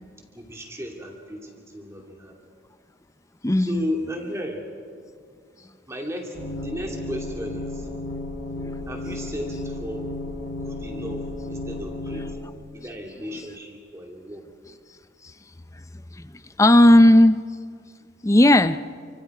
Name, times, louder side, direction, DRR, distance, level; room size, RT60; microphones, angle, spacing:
voice 1, 0.3-2.4 3.6-4.7 5.9-7.9 8.9-10.1 10.6-12.4 12.7-14.4, equal, 15° right, 0 dB, 2.6 m, -34 dB
voice 2, 3.4-3.9 8.6-8.7 15.2-15.3 16.1-16.3 16.6-17.4 18.2-18.8, left 1 dB, 15° left, 13 dB, 0.5 m, -15 dB
sound 1, 6.3-12.3, left 2 dB, 85° left, 3.6 m, -33 dB
30.0 x 25.5 x 4.9 m, 2.1 s
head